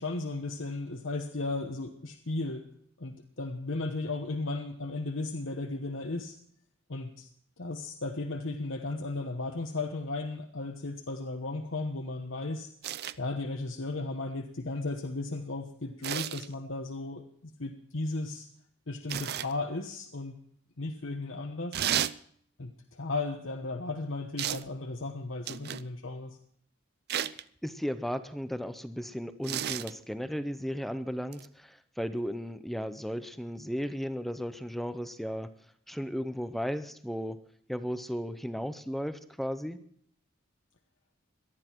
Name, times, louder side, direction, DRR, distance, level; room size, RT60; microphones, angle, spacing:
voice 1, 0.0-2.6 3.0-6.4 6.9-7.3 7.6-12.7 13.2-18.5 18.9-20.4 20.8-21.8 22.6-26.4, left 2 dB, 70° left, 3 dB, 1.2 m, -35 dB
sound 1, 12.8-13.2 16.0-16.5 19.1-19.5 21.7-22.2 24.4-24.7 25.5-25.9 27.1-27.4 29.4-29.9 31.3-31.5, right 10 dB, 55° right, 0.5 m, -32 dB
voice 2, 27.3-35.5 35.9-37.4 37.7-39.8, equal, ahead, 11 dB, 0.7 m, -35 dB
18.5 x 12.0 x 4.5 m, 0.64 s
head